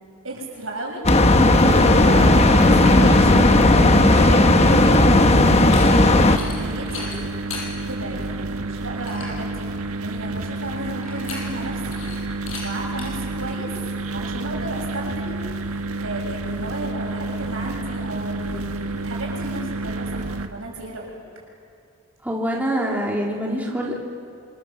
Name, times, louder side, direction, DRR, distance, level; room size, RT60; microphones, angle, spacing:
voice 1, 0.2-1.1 1.9-7.1 7.8-9.7 10.0-12.0 12.6-13.7 14.1-15.5 16.0-21.1, right 1 dB, 70° right, 0 dB, 6.9 m, -33 dB
sound 1, 1.1-6.4, left 2 dB, 30° left, 1.1 m, -14 dB
sound 2, 1.6-20.5, right 2 dB, 90° right, 1.5 m, -30 dB
sound 3, 5.5-5.8 6.3-6.6 6.9-7.7 8.2-8.3 8.7-8.8 9.0-9.4 11.0-11.7 11.9-12.2 12.5-12.6 13.0-13.1, left 4 dB, 65° left, 7.5 m, -35 dB
voice 2, 22.2-23.9, equal, 10° right, -3 dB, 2.8 m, -25 dB
27.0 x 26.5 x 7.5 m, 2.4 s
head